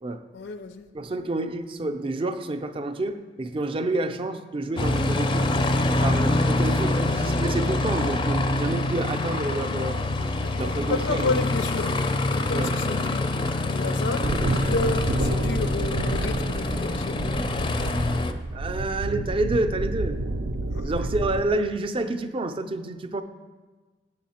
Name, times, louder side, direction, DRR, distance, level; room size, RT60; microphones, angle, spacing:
voice 1, 0.3-0.9 10.5-11.9 12.3-13.3 13.7-17.5 20.7-20.9, left 3 dB, 85° left, 10 dB, 0.4 m, -31 dB
voice 2, 0.9-5.5 6.0-10.0 10.6-11.3 12.5-12.8 18.5-20.2 20.8-23.2, right 2 dB, 30° right, 9 dB, 0.4 m, -28 dB
Aircraft, 4.8-18.3, left 2 dB, 25° left, 0.4 m, -25 dB
sound 1, 14.2-21.5, right 2 dB, 85° right, 0.5 m, -30 dB
8.6 x 6.5 x 4.2 m, 1.3 s
head